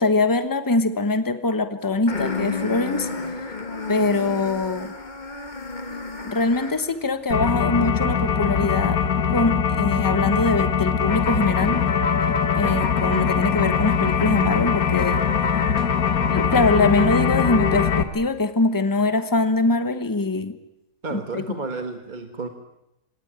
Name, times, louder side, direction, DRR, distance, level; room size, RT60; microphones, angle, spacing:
voice 1, 0.0-3.1 3.9-4.9 6.2-9.0 9.3-11.8 12.5-15.2 15.5-15.6 16.3-20.5 21.1-21.4, left 3 dB, 15° left, 11 dB, 1.2 m, -23 dB
sound 1, 2.1-7.0, left 3 dB, 35° left, 1.7 m, -31 dB
sound 2, 7.3-18.0, left 7 dB, 85° left, 1.9 m, -22 dB
voice 2, 21.0-22.5, right 3 dB, 35° right, 6 dB, 1.5 m, -31 dB
26.5 x 18.5 x 8.9 m, 0.88 s
omnidirectional pair, 1.5 m